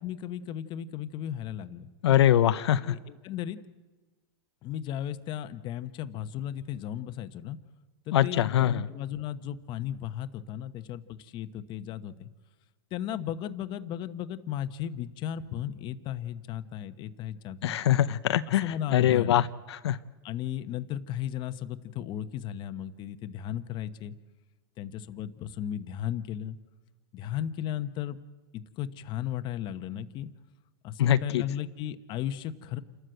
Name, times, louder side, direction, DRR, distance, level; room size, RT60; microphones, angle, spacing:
voice 1, 0.0-1.9 2.8-3.6 4.6-7.6 8.1-12.3 12.9-17.8 18.5-19.3 20.2-24.1 24.8-26.6 27.1-28.2 28.5-30.3 30.8-32.8, left 10 dB, 35° left, 11 dB, 1.0 m, -35 dB
voice 2, 2.0-2.9 8.1-8.9 17.6-18.6 18.9-20.0 31.0-31.4, left 11 dB, 85° left, 11 dB, 0.7 m, -23 dB
28.0 x 13.0 x 7.9 m, 1.3 s
supercardioid pair, 140°, 14 cm